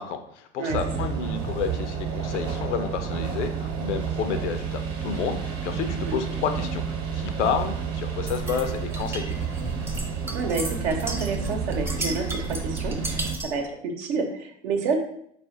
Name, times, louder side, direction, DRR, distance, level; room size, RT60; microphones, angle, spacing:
voice 1, 0.0-6.8 7.1-9.7, left 7 dB, 85° left, 8 dB, 0.6 m, -30 dB
sound 1, 0.7-13.4, right 7 dB, 40° right, 1.0 m, -30 dB
sound 2, 8.3-13.6, right 1 dB, 5° right, 0.5 m, -34 dB
voice 2, 10.3-15.0, right 4 dB, 75° right, 3 dB, 0.9 m, -29 dB
4.3 x 2.5 x 3.7 m, 0.70 s
hypercardioid pair, 80°, 34 cm